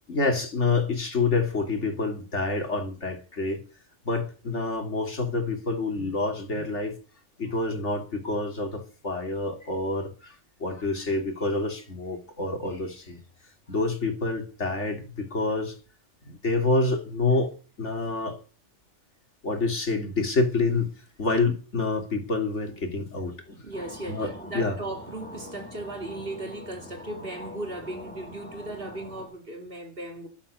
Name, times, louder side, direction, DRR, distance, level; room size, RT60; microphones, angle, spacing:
voice 1, 0.1-3.6 4.0-7.0 7.4-10.3 10.6-13.2 13.7-15.8 16.2-18.4 19.4-20.9 21.2-23.6 24.1-24.3 24.5-24.7, left 3 dB, 60° left, 3.3 m, -27 dB
voice 2, 23.6-30.3, right 2 dB, 45° right, 2.8 m, -37 dB
sound 1, 23.7-29.3, left 1 dB, 5° left, 5.5 m, -43 dB
12.0 x 11.5 x 6.9 m
omnidirectional pair, 1.3 m